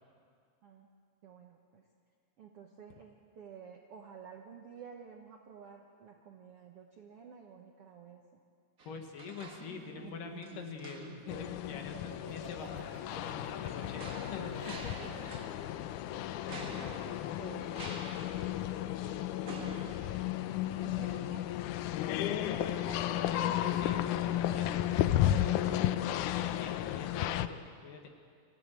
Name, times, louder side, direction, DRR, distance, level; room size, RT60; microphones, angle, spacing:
voice 1, 1.2-1.8 2.4-8.2 15.0-15.3 16.6-18.0 19.5-19.8 20.7-21.5 22.5-23.6 24.3-25.2, right 6 dB, 65° right, 2 dB, 1.5 m, -52 dB
sound 1, 8.8-10.1 10.4-11.4 13.2-15.9 16.5-20.8 21.2-21.3, right 3 dB, 50° right, 1.0 m, -49 dB
voice 2, 8.9-15.3 22.2-24.0 24.5-28.1, left 5 dB, 65° left, 4 dB, 3.0 m, -45 dB
Laughter, 9.6-15.6, right 2 dB, 25° right, 2.8 m, -50 dB
sound 2, 11.3-27.5, left 12 dB, 80° left, 1.8 m, -33 dB
24.5 x 15.0 x 9.0 m, 2.2 s
omnidirectional pair, 4.4 m